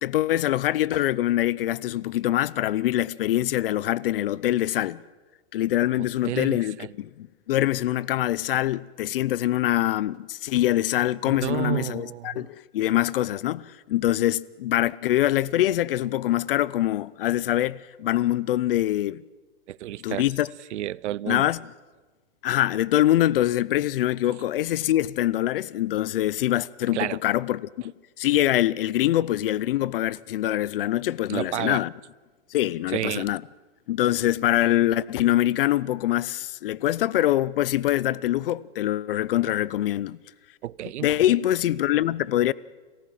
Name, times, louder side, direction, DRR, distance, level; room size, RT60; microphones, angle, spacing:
voice 1, 0.0-5.0 5.5-19.2 20.0-20.5 21.3-21.6 22.4-27.7 28.2-31.9 32.5-33.4 33.9-40.2 41.0-42.5, left 14 dB, 55° left, 0.7 m, -24 dB
voice 2, 6.0-6.9 11.3-12.5 19.7-20.3 20.7-21.5 26.9-27.2 31.3-31.8 32.9-33.3 40.6-41.1, right 13 dB, 90° right, 0.6 m, -31 dB
29.0 x 14.5 x 7.6 m
hypercardioid pair, 160°, 34 cm